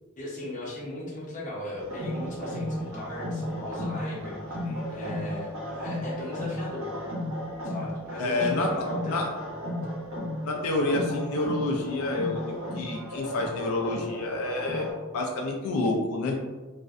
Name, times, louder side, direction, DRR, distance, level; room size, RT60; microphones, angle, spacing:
voice 1, 0.2-4.6 4.9-6.9 7.6-9.2, left 1 dB, 35° left, -5 dB, 0.6 m, -37 dB
sound 1, 1.8-14.9, equal, 90° right, 0.8 m, -34 dB
voice 2, 4.7-5.2 8.2-8.7 9.1-9.3 10.5-12.4 12.7-14.9 15.1-16.4, left 2 dB, 85° left, 1 dB, 0.3 m, -28 dB
2.5 x 2.1 x 2.3 m, 1.3 s
head